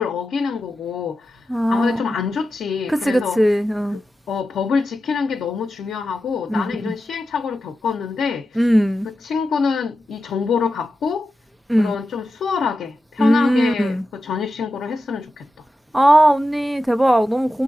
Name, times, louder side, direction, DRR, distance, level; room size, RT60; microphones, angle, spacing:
voice 1, 0.0-1.4 1.7-3.4 4.3-8.7 9.0-11.3 11.8-15.5, left 6 dB, 65° left, 0.7 m, -25 dB
voice 2, 1.5-2.0 2.9-4.0 6.5-6.9 8.6-9.1 11.7-12.0 13.2-14.0 15.9-17.6, equal, 5° right, 0.3 m, -18 dB
3.8 x 2.7 x 2.6 m
cardioid pair, 90°, 0 cm